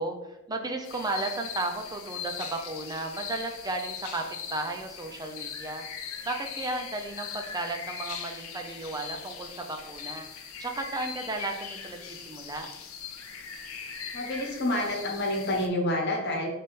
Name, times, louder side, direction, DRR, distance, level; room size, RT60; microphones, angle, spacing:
voice 1, 0.0-12.7, right 2 dB, 20° right, 4 dB, 0.5 m, -34 dB
sound 1, 0.8-15.7, left 7 dB, 80° left, 0.6 m, -40 dB
voice 2, 14.1-16.5, left 1 dB, 55° left, 0 dB, 1.1 m, -28 dB
3.6 x 3.4 x 4.1 m, 0.92 s
head